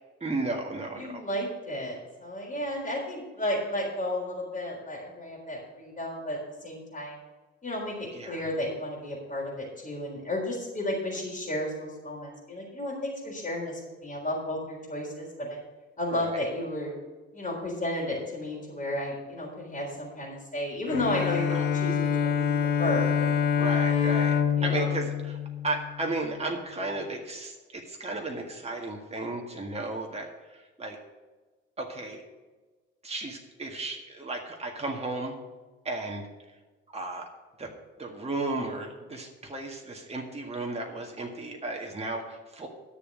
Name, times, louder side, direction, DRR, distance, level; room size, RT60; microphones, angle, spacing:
voice 1, 0.2-1.2 8.1-8.5 16.1-16.4 21.5-21.7 23.6-31.0 31.8-32.2 33.0-35.4 35.8-36.3 36.9-37.3 37.6-37.7 38.0-42.7, right 2 dB, 20° right, 1 dB, 1.8 m, -34 dB
voice 2, 1.0-7.2 7.6-15.6 16.0-17.0 17.3-22.0 22.2-22.5 22.8-23.5 24.6-24.9, left 1 dB, 20° left, -4 dB, 3.9 m, -33 dB
Bowed string instrument, 20.9-26.3, left 8 dB, 65° left, 1.0 m, -26 dB
11.0 x 6.9 x 6.2 m, 1.3 s
figure-of-eight pair, 45°, 35 cm